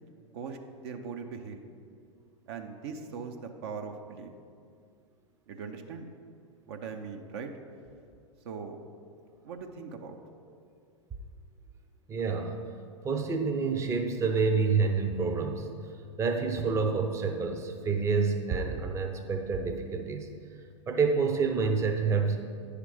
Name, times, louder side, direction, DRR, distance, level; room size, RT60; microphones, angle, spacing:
voice 1, 0.3-1.6 2.5-4.3 5.5-6.1 6.7-7.5 8.4-8.8 9.4-10.2, right 5 dB, 55° right, 5 dB, 0.7 m, -40 dB
voice 2, 12.1-12.6 13.0-15.7 16.2-20.3 20.9-22.4, right 5 dB, 15° right, 4 dB, 0.7 m, -28 dB
9.8 x 5.0 x 4.9 m, 2.3 s
figure-of-eight pair, 95°, 16 cm